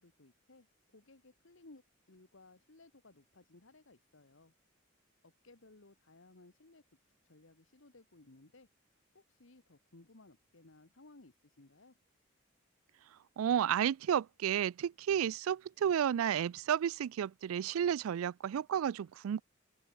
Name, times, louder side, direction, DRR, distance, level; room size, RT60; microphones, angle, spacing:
voice 1, 0.0-4.5 5.2-6.8 7.2-8.7 9.1-11.9, left 2 dB, 65° left, 1.5 m, -60 dB
voice 2, 13.4-19.4, right 9 dB, 85° right, 0.3 m, -32 dB
open air
head